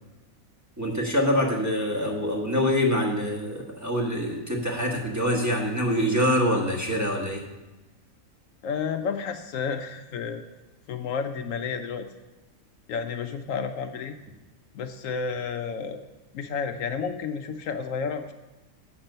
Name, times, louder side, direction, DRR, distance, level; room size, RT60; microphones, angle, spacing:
voice 1, 0.8-7.4, equal, 10° right, 0 dB, 1.3 m, -25 dB
voice 2, 8.6-10.4 10.9-12.1 12.9-14.1 14.7-16.0 16.3-18.3, left 6 dB, 70° left, 7 dB, 0.9 m, -31 dB
8.0 x 5.8 x 6.6 m, 1.1 s
omnidirectional pair, 1.5 m